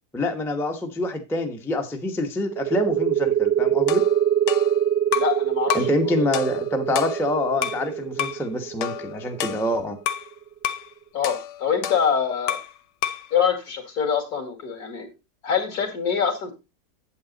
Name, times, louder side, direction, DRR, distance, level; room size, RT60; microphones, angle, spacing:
voice 1, 0.1-4.0 5.7-10.0, left 2 dB, ahead, 0.7 m, -26 dB
sound 1, 2.5-9.9, right 10 dB, 70° right, 0.6 m, -24 dB
sound 2, 3.9-5.4 5.7-6.0 6.3-7.9 8.2-8.4 8.8-10.3 10.6-10.9 11.2-12.8 13.0-13.3, left 10 dB, 85° left, 1.3 m, -30 dB
voice 2, 5.1-5.8 6.0-6.2 11.1-12.6 13.3-15.1 15.4-16.5, left 7 dB, 65° left, 2.6 m, -24 dB
8.6 x 8.2 x 3.9 m
omnidirectional pair, 1.8 m